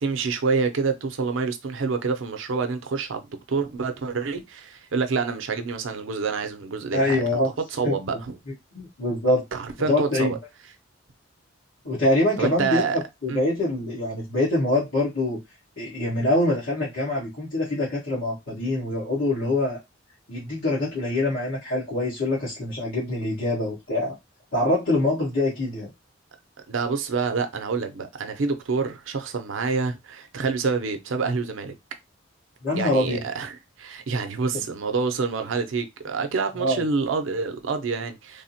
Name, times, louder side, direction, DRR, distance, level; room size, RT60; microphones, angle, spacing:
voice 1, 0.0-7.4 7.7-8.4 9.5-10.4 12.4-13.0 13.3-13.4 26.7-31.7 32.8-38.4, right 4 dB, 75° right, 0.5 m, -27 dB
voice 2, 6.9-7.5 7.8-8.0 8.7-9.4 9.9-10.3 11.8-15.4 15.8-19.8 20.3-24.1 24.5-25.9 32.6-33.2 36.6-36.8, left 1 dB, 85° left, 1.4 m, -24 dB
3.3 x 2.1 x 2.7 m
head